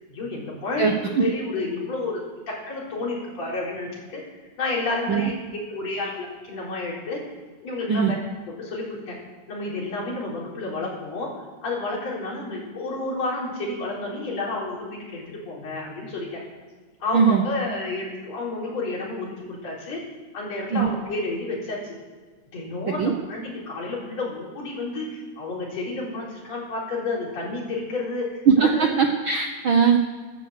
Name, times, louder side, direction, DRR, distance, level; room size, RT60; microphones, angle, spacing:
voice 1, 0.1-2.2 2.5-5.3 5.7-7.2 7.6-8.2 8.5-9.2 9.5-11.3 11.6-16.4 17.0-20.0 20.3-21.8 22.5-28.9, left 2 dB, 60° left, -4 dB, 5.2 m, -30 dB
voice 2, 0.8-1.2 5.1-5.2 7.9-8.1 17.1-17.4 20.7-20.9 22.9-23.1 28.5-30.0, right 6 dB, 65° right, 4 dB, 1.3 m, -20 dB
12.5 x 12.5 x 8.1 m, 1.4 s
omnidirectional pair, 3.4 m